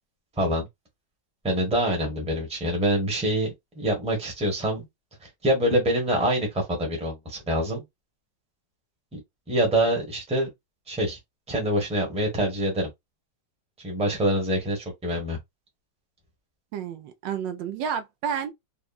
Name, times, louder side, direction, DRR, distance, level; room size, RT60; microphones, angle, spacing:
voice 1, 0.4-0.7 1.4-3.5 3.7-4.9 5.2-7.8 9.1-9.2 9.5-10.5 10.9-11.2 11.5-12.9 13.8-15.4, right 1 dB, 5° right, 0.9 m, -25 dB
voice 2, 16.7-18.5, right 7 dB, 75° right, 1.2 m, -30 dB
3.6 x 2.1 x 2.3 m
omnidirectional pair, 2.0 m